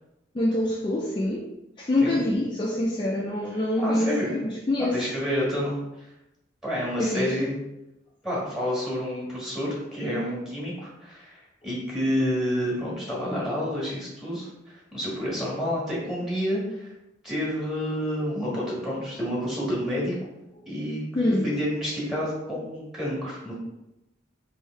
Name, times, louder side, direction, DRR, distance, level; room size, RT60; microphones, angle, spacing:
voice 1, 0.3-1.5 1.8-5.0 7.0-7.5 21.1-21.5, left 1 dB, 25° left, -3 dB, 0.4 m, -25 dB
voice 2, 3.8-4.3 4.8-5.8 6.6-7.6 8.2-16.9 17.2-20.1 20.7-23.6, equal, ahead, -6 dB, 1.4 m, -29 dB
3.2 x 2.7 x 4.3 m, 0.90 s
head